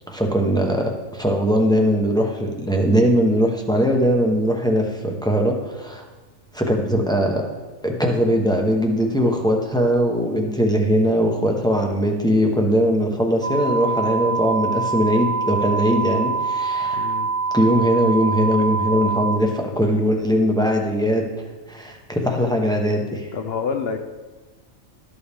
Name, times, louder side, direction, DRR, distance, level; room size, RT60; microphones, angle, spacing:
voice 1, 0.1-6.0 6.5-7.4 7.8-17.1 17.5-21.2 21.7-23.3, equal, 5° left, 1 dB, 0.8 m, -20 dB
sound 1, 13.4-19.4, right 4 dB, 45° right, 0.4 m, -24 dB
voice 2, 16.9-17.3 23.3-24.0, left 5 dB, 55° left, 6 dB, 0.8 m, -27 dB
12.5 x 7.0 x 3.5 m, 1.3 s
omnidirectional pair, 1.4 m